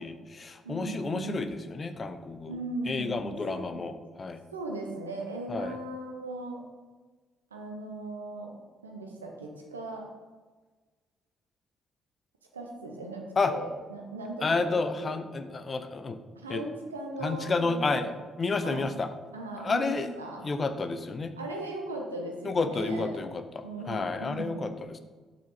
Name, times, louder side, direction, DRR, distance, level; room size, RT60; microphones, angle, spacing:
voice 1, 0.0-2.6 2.9-4.4 5.5-5.8 13.4-13.5 14.4-16.2 16.5-16.6 17.2-18.1 18.4-19.1 19.6-20.1 20.4-21.3 22.4-25.0, left 3 dB, 35° left, 10 dB, 0.6 m, -30 dB
voice 2, 0.6-1.4 2.5-3.8 4.5-6.6 7.5-8.5 8.8-10.1 12.5-15.2 16.4-18.1 18.6-18.9 19.3-20.4 21.4-23.2 23.6-24.7, right 2 dB, 85° right, 1 dB, 0.8 m, -38 dB
6.2 x 4.3 x 4.1 m, 1.3 s
figure-of-eight pair, 45°, 0 cm